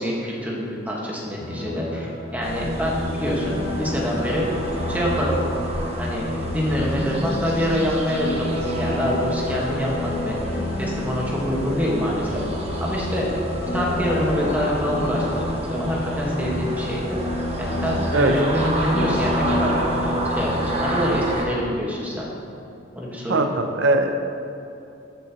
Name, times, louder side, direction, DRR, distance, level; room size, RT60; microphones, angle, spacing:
voice 1, 0.0-4.5 4.9-5.4 6.0-10.4 10.8-12.3 12.8-13.3 13.7-17.2 17.6-22.3 22.9-23.3, equal, 10° right, -4 dB, 1.5 m, -25 dB
sound 1, 1.4-21.1, left 1 dB, 70° left, 1.7 m, -29 dB
sound 2, 2.4-21.4, right 1 dB, 35° right, 1.1 m, -31 dB
voice 2, 18.1-18.5 23.3-24.2, right 2 dB, 80° right, 6 dB, 0.5 m, -20 dB
13.5 x 7.0 x 3.0 m, 2.8 s
head